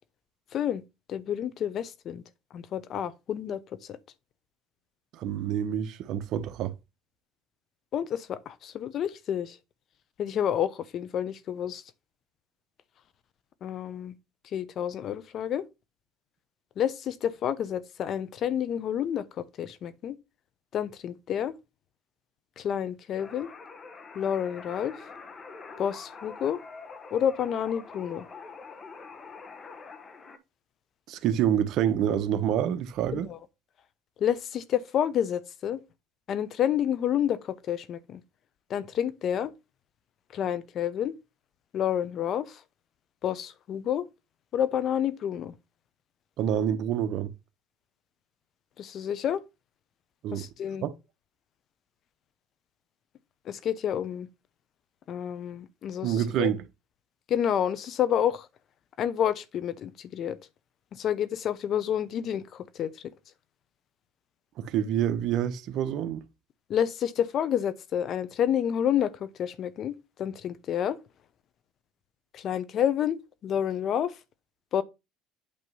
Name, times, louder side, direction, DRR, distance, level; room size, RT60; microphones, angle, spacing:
voice 1, 0.5-0.8 1.1-2.2 2.5-3.6 3.9-4.0 7.9-9.6 10.2-11.8 13.6-14.1 14.5-15.6 16.8-20.1 20.7-21.5 22.6-23.5 24.1-25.0 25.8-26.6 27.1-28.3 33.1-33.4 34.2-35.8 36.3-38.2 38.7-39.5 40.3-41.2 41.7-42.6 43.2-44.1 44.5-45.5 48.8-49.4 50.3-50.9 53.5-54.3 55.1-56.5 57.3-58.5 59.0-60.4 60.9-62.9 66.7-71.0 72.3-74.1 74.7-74.8, left 9 dB, 50° left, 0.8 m, -29 dB
voice 2, 5.1-6.7 31.1-33.3 46.4-47.3 50.2-50.4 50.8-50.9 56.0-56.6 64.6-66.2, right 10 dB, 60° right, 0.9 m, -27 dB
sound 1, 23.2-30.4, left 4 dB, 30° left, 1.1 m, -45 dB
8.6 x 3.0 x 5.4 m
cardioid pair, 110°, 0 cm